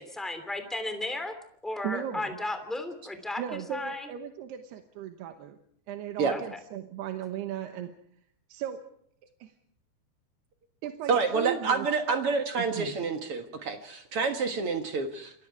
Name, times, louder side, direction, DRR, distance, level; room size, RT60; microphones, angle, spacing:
voice 1, 0.0-1.3 1.6-3.4 3.7-4.1 6.3-6.6, left 2 dB, ahead, 7 dB, 2.0 m, -34 dB
voice 2, 1.8-2.4 3.4-5.6 5.9-7.9 8.5-8.8 9.4-9.5 10.8-11.9 12.6-13.0, right 10 dB, 90° right, 6 dB, 3.2 m, -36 dB
voice 3, 11.1-15.3, right 4 dB, 55° right, 6 dB, 1.7 m, -28 dB
28.0 x 22.0 x 4.7 m, 0.65 s
omnidirectional pair, 4.6 m